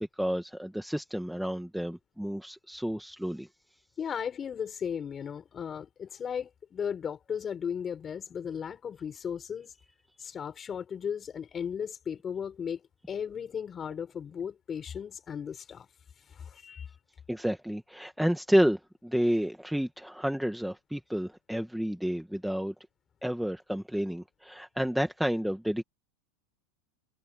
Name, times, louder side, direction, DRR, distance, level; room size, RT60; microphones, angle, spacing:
voice 1, 0.0-3.5 17.3-22.7 23.2-25.8, equal, ahead, 1.6 m, -30 dB
voice 2, 4.0-9.7 10.2-12.8 13.1-15.9 16.3-16.9, left 7 dB, 25° left, 6.7 m, -36 dB
supercardioid pair, 130°, 0 cm